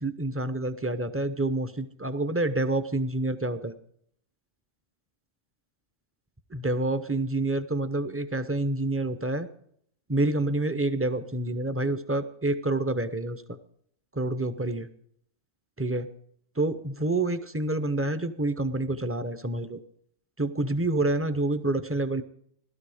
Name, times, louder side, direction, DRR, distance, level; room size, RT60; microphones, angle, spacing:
voice 1, 0.0-3.7 6.5-9.5 10.1-13.6 14.1-14.9 15.8-16.1 16.6-19.8 20.4-22.2, right 2 dB, 15° right, 11 dB, 0.6 m, -28 dB
16.0 x 12.5 x 4.9 m, 0.66 s
omnidirectional pair, 1.3 m